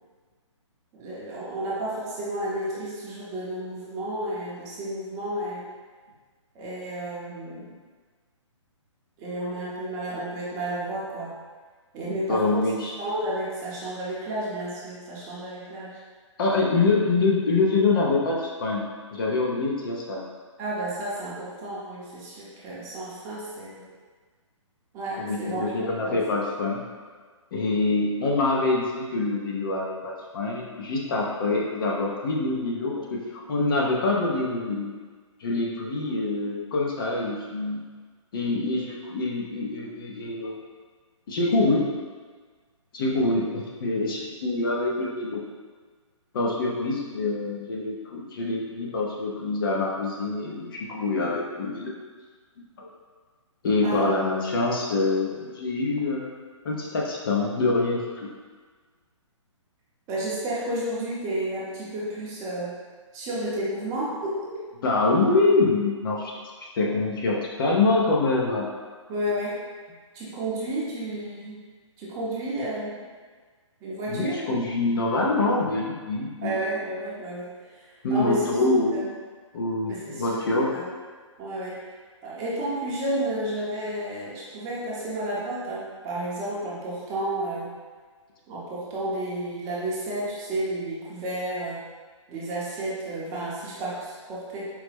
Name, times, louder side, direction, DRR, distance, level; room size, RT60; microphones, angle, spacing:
voice 1, 0.9-5.6 6.5-7.7 9.2-11.3 11.9-15.9 20.6-23.8 24.9-26.2 53.8-54.1 60.1-62.7 63.1-64.5 69.1-69.6 70.1-71.6 72.0-73.0 73.8-74.4 76.4-78.5 78.9-79.0 79.9-80.4 80.7-80.9 81.4-81.8 82.2-87.7 88.5-91.8 92.3-94.7, right 1 dB, 20° right, -7 dB, 0.7 m, -31 dB
voice 2, 12.3-12.9 16.4-18.9 19.1-20.2 25.2-26.8 27.5-34.9 35.4-37.8 38.3-40.6 41.3-41.9 42.9-45.5 46.3-51.9 52.8-52.9 53.6-58.3 64.8-66.3 66.8-68.7 74.1-76.5 78.0-79.1 79.5-80.7, left 3 dB, 45° left, -2 dB, 0.6 m, -25 dB
4.7 x 2.1 x 3.4 m, 1.5 s
hypercardioid pair, 150°, 16 cm